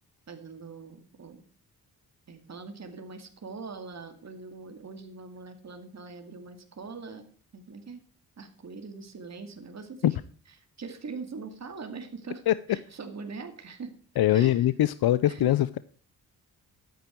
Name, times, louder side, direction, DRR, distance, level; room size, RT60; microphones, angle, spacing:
voice 1, 0.3-1.4 2.3-7.2 7.5-8.0 8.4-10.2 10.8-12.4 12.7-13.9 14.3-14.7 15.2-15.5, right 4 dB, 45° right, 2.3 m, -42 dB
voice 2, 14.2-15.8, left 13 dB, 75° left, 0.6 m, -22 dB
12.0 x 9.1 x 4.5 m
cardioid pair, 85°, 37 cm